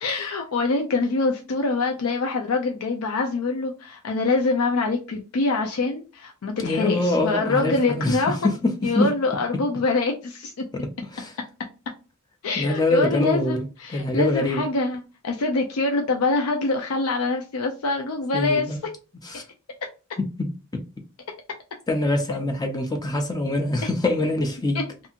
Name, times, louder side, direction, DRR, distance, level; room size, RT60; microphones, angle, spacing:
voice 1, 0.0-8.4 8.8-10.7 12.4-18.8 24.7-24.8, left 3 dB, 85° left, 0.5 m, -25 dB
voice 2, 6.6-9.1 11.1-11.3 12.6-13.6 13.9-14.7 18.3-18.8 19.2-19.5 20.2-20.5 21.9-24.8, left 2 dB, 20° left, 0.5 m, -24 dB
2.7 x 2.6 x 2.4 m
head